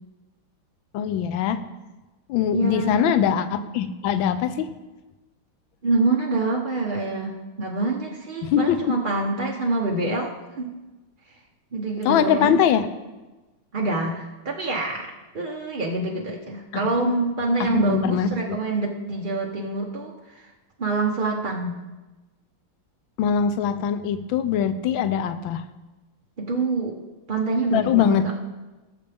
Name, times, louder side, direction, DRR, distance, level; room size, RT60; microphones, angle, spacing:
voice 1, 0.9-1.6 2.3-4.7 8.4-8.9 12.0-12.9 16.7-16.9 17.6-18.6 23.2-25.6 27.7-28.4, left 8 dB, 75° left, 11 dB, 1.4 m, -22 dB
voice 2, 2.5-3.1 5.8-10.7 11.7-12.6 13.7-20.5 20.8-21.7 26.4-26.9 27.3-28.2, right 3 dB, 50° right, -1 dB, 0.5 m, -26 dB
18.0 x 7.0 x 3.5 m, 1.1 s
omnidirectional pair, 2.3 m